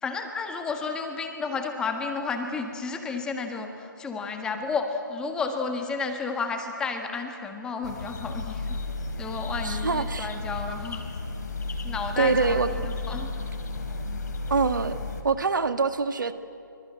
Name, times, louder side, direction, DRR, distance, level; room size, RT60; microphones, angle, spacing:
voice 1, 0.0-8.8 9.2-11.0 11.8-13.3, left 4 dB, 5° left, 5 dB, 1.5 m, -32 dB
sound 1, 7.8-15.2, left 3 dB, 55° left, 3.9 m, -33 dB
voice 2, 9.6-10.3 12.2-12.9 14.5-15.0 15.2-16.3, right 4 dB, 60° right, 10 dB, 1.6 m, -25 dB
26.0 x 25.0 x 9.0 m, 2.6 s
figure-of-eight pair, 150°, 11 cm